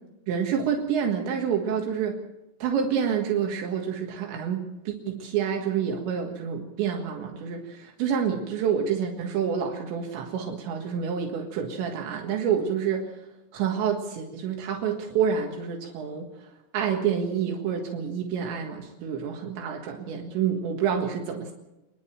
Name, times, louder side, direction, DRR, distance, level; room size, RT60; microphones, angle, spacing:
voice 1, 0.3-2.2 2.6-13.0 13.5-16.3 16.7-21.5, right 7 dB, 80° right, 2 dB, 3.9 m, -28 dB
28.5 x 10.5 x 9.0 m, 0.96 s
omnidirectional pair, 5.2 m